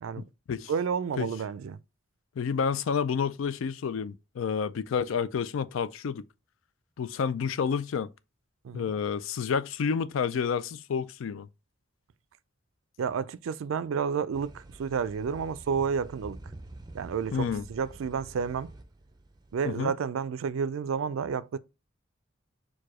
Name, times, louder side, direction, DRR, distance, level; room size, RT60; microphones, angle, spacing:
voice 1, 0.2-0.7 1.2-1.3 2.4-6.2 7.0-8.1 8.7-11.5 17.3-17.7 19.6-19.9, left 6 dB, 75° left, 0.4 m, -29 dB
voice 2, 0.7-1.8 8.6-8.9 13.0-16.4 16.9-18.7 19.5-21.6, right 6 dB, 80° right, 0.4 m, -30 dB
sound 1, 14.3-19.8, right 2 dB, 20° right, 0.5 m, -47 dB
4.7 x 2.2 x 4.7 m
head